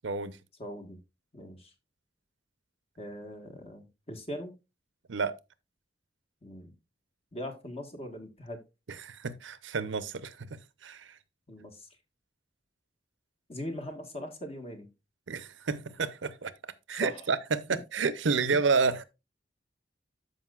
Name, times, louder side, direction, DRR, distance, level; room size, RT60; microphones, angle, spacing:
voice 1, 0.0-0.4 5.1-5.4 9.0-11.1 15.3-16.5 16.9-19.0, right 4 dB, 80° right, 0.7 m, -30 dB
voice 2, 0.6-1.0 1.3-1.7 3.0-4.5 6.4-6.7 7.3-8.6 11.5-11.9 13.5-14.9 17.0-17.3 17.7-17.8, left 1 dB, 30° left, 1.4 m, -40 dB
13.5 x 5.3 x 2.4 m
head